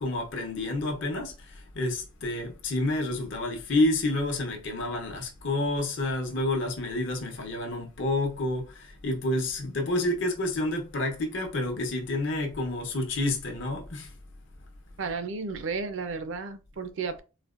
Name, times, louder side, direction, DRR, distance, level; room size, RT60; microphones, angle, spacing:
voice 1, 0.0-14.1, left 2 dB, 60° left, 0.8 m, -29 dB
voice 2, 15.0-17.2, right 4 dB, 65° right, 0.4 m, -33 dB
4.1 x 2.1 x 2.4 m
head